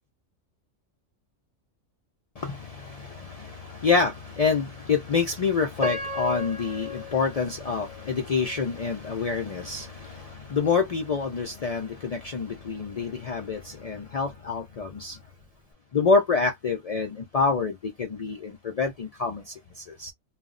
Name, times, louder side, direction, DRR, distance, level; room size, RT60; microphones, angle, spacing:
voice 1, 2.4-15.2 15.9-20.1, left 4 dB, 75° left, 0.3 m, -27 dB
Piano, 5.8-8.8 9.4-9.5 10.1-10.4, left 2 dB, 10° right, 0.6 m, -35 dB
2.3 x 2.0 x 3.6 m
omnidirectional pair, 1.3 m